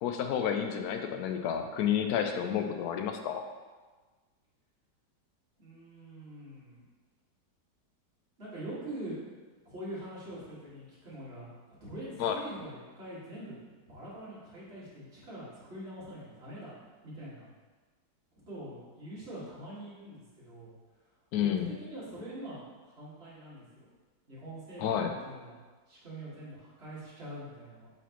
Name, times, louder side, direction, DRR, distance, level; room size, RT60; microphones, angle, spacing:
voice 1, 0.0-3.4 12.2-12.4 21.3-21.7 24.8-25.1, left 9 dB, 70° left, 6 dB, 1.0 m, -30 dB
voice 2, 5.6-6.9 8.4-9.2 9.6-11.5 11.8-13.5 13.9-16.7 17.0-17.5 18.5-20.7 21.4-23.9 24.3-25.6 25.9-27.9, right 1 dB, 35° right, -9 dB, 2.3 m, -44 dB
8.2 x 4.2 x 3.0 m, 1.3 s
omnidirectional pair, 1.9 m